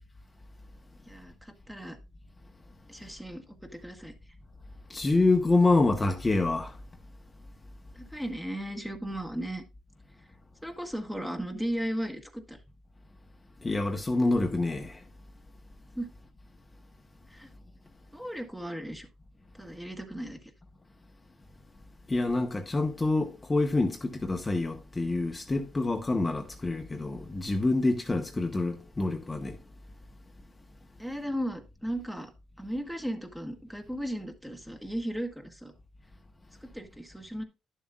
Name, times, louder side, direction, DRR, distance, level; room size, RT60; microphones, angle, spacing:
voice 1, 1.1-2.0 2.9-3.4 3.8-4.1 7.9-9.6 10.6-12.6 15.9-16.1 17.3-17.5 18.1-19.1 19.6-20.4 31.0-32.3 32.6-35.7 36.6-37.4, equal, 5° right, 1.4 m, -36 dB
voice 2, 4.9-6.8 13.6-15.0 22.1-29.6, left 2 dB, 20° left, 1.0 m, -27 dB
11.0 x 7.2 x 2.3 m
cardioid pair, 90°, 0 cm